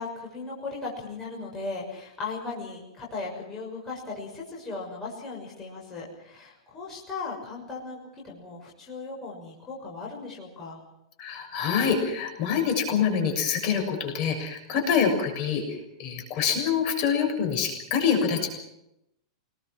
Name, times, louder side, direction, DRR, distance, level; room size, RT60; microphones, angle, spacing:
voice 1, 0.0-10.8, left 3 dB, 15° left, -3 dB, 6.4 m, -37 dB
voice 2, 11.2-18.5, left 6 dB, 35° left, 4 dB, 6.7 m, -26 dB
28.0 x 20.5 x 6.3 m, 0.82 s
supercardioid pair, 170°, 3 cm